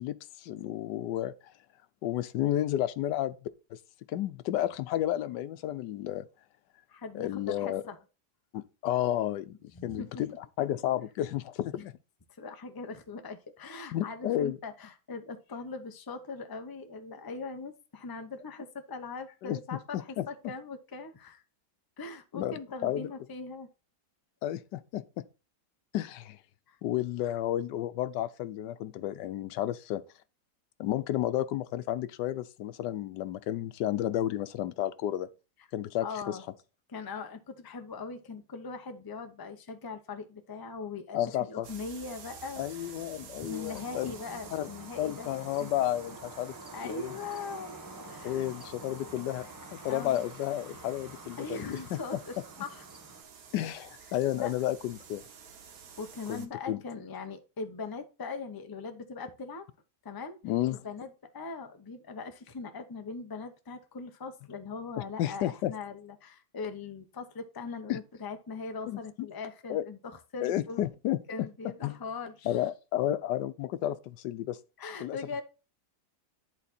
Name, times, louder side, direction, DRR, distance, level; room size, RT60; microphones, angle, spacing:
voice 1, 0.0-1.5 2.0-3.4 3.7-3.8 4.1-6.2 7.1-7.8 8.5-11.9 13.9-14.6 19.4-20.5 22.3-23.1 24.4-25.2 25.9-26.4 26.8-30.0 30.8-35.3 35.7-36.4 41.1-41.7 42.6-44.1 44.5-44.7 45.0-46.5 46.8-47.1 48.2-49.5 49.7-52.0 53.5-55.2 56.3-56.8 60.4-60.8 65.0-65.7 67.9-68.0 68.9-69.0 69.7-69.8 70.4-71.2 71.8-72.0 72.4-74.6 75.0-75.4, left 12 dB, 90° left, 1.3 m, -32 dB
voice 2, 6.9-8.0 9.7-10.4 12.4-21.4 22.0-23.7 26.7-26.8 36.0-36.4 36.9-42.9 43.4-45.3 45.6-45.7 46.7-47.7 48.0-48.5 49.9-50.2 51.4-52.8 54.3-54.5 56.0-59.6 60.0-60.4 60.7-70.8 71.3-72.7 74.8-75.4, left 4 dB, 25° left, 0.5 m, -40 dB
sound 1, 41.6-56.5, right 7 dB, 60° right, 1.3 m, -51 dB
sound 2, 43.5-53.2, right 2 dB, 10° right, 1.3 m, -48 dB
10.5 x 4.1 x 4.2 m
omnidirectional pair, 1.8 m